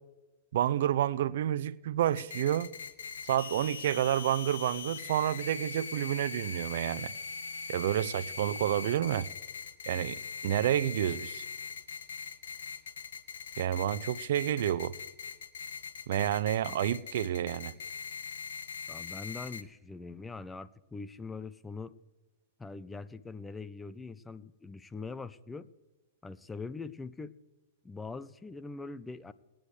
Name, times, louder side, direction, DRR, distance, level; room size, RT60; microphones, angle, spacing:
voice 1, 0.5-2.8 3.2-7.1 7.7-9.3 9.9-11.4 13.6-15.0 16.1-17.7, right 11 dB, 65° right, 0.4 m, -29 dB
sound 1, 2.2-19.6, left 5 dB, 80° left, 1.0 m, -41 dB
voice 2, 18.9-21.9 22.6-25.7 26.2-27.3 27.8-29.3, left 4 dB, 10° left, 0.5 m, -42 dB
20.0 x 10.0 x 3.2 m
hypercardioid pair, 115°, 0 cm